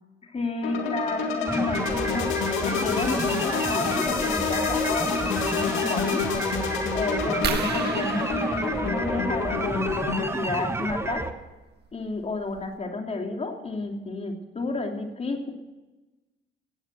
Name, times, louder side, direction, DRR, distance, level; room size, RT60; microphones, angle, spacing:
voice 1, 0.2-2.3 2.6-6.2 6.9-11.3 11.9-15.5, left 3 dB, 30° left, 3 dB, 2.9 m, -31 dB
sound 1, 0.6-10.3, left 6 dB, 90° left, 2.3 m, -28 dB
sound 2, 1.5-11.3, right 2 dB, 15° right, 1.3 m, -30 dB
sound 3, 7.4-9.8 11.4-11.6 12.2-12.3 12.6-12.8, right 6 dB, 55° right, 1.5 m, -34 dB
17.0 x 8.9 x 7.9 m, 1.1 s
cardioid pair, 90°, 20 cm